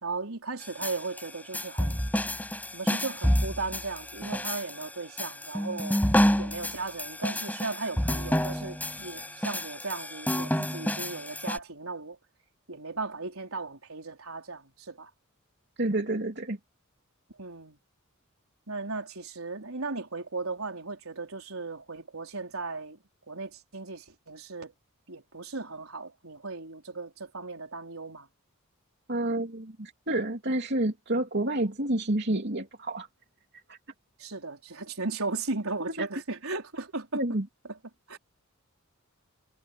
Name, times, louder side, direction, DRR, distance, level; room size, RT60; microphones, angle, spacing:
voice 1, 0.0-2.0 2.7-6.0 6.4-12.2 12.7-15.1 17.4-17.8 18.7-23.0 23.3-24.7 25.1-28.3 34.2-37.2 37.7-37.8 38.1-38.2, right 3 dB, 80° right, 4.5 m, -36 dB
sound 1, 0.6-11.6, equal, 10° left, 5.7 m, -29 dB
voice 2, 15.8-16.6 29.1-33.1 33.7-33.8 36.0-36.1 37.1-37.5, right 1 dB, 55° right, 3.0 m, -29 dB
head